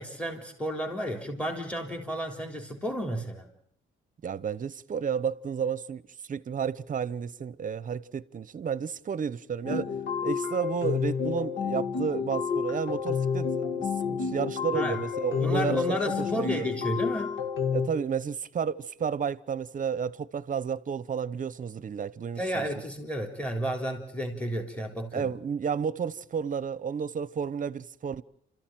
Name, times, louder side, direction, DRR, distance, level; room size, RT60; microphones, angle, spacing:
voice 1, 0.0-3.5 14.7-15.0 15.4-17.4 22.4-25.3, equal, 5° left, 3.6 m, -32 dB
voice 2, 4.2-6.0 6.3-9.9 10.2-15.8 16.3-16.7 17.7-22.7 25.1-28.2, right 7 dB, 40° right, 0.9 m, -32 dB
sound 1, 9.6-17.9, left 6 dB, 75° left, 2.4 m, -30 dB
28.5 x 14.0 x 9.1 m
cardioid pair, 90°, 20 cm